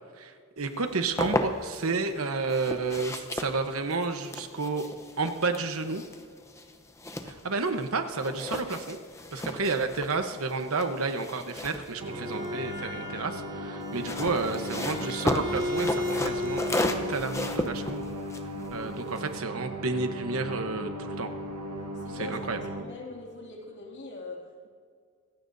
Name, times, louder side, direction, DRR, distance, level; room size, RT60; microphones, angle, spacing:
voice 1, 0.2-4.9 5.2-6.0 7.3-9.0 9.3-18.1 18.7-21.3 22.1-22.6, right 3 dB, 70° right, 1.0 m, -31 dB
sound 1, 0.8-1.9 2.5-7.9 8.2-12.8 13.8-19.4, left 1 dB, 15° left, 0.8 m, -34 dB
Bowed string instrument, 11.9-17.2, left 1 dB, 20° right, 1.4 m, -35 dB
sound 2, 12.0-22.8, equal, 85° right, 1.5 m, -37 dB
voice 2, 14.1-14.5 21.9-24.7, left 3 dB, 55° left, 2.5 m, -42 dB
25.5 x 15.5 x 2.7 m
head